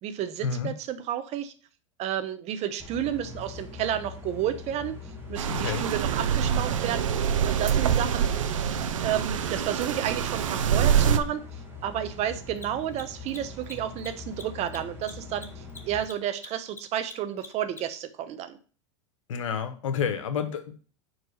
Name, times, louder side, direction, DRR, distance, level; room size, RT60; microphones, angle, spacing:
voice 1, 0.0-1.5 2.0-4.9 5.3-8.3 9.0-11.5 11.8-18.6, right 10 dB, 45° right, 11 dB, 0.9 m, -31 dB
sound 1, 2.8-16.0, left 4 dB, 15° right, 2.2 m, -42 dB
sound 2, 5.4-11.2, right 8 dB, 85° right, 0.7 m, -25 dB
voice 2, 5.5-5.8 19.3-20.7, left 7 dB, 85° left, 9 dB, 1.2 m, -29 dB
Mechanisms, 9.4-9.5 12.5-18.1, left 3 dB, 15° left, 1.0 m, -45 dB
5.1 x 4.8 x 6.3 m, 0.40 s
hypercardioid pair, 110°, 16 cm